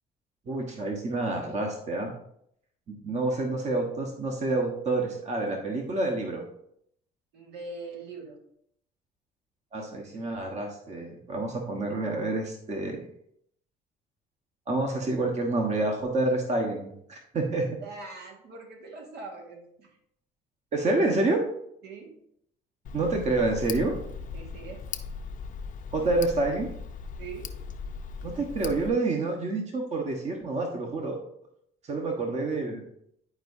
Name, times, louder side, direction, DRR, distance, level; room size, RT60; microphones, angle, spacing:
voice 1, 0.5-2.1 2.9-6.4 9.7-13.0 14.7-17.7 20.7-21.4 22.9-24.0 25.9-26.7 28.2-31.2 31.9-32.8, right 2 dB, 40° right, 2 dB, 1.3 m, -28 dB
voice 2, 7.3-8.4 17.8-20.0 21.8-22.2 24.3-24.9 27.2-27.6, right 3 dB, 75° right, 1 dB, 1.8 m, -42 dB
Tick, 22.8-28.9, left 5 dB, 50° left, 0.6 m, -38 dB
10.5 x 4.7 x 2.7 m, 0.72 s
cardioid pair, 110°, 17 cm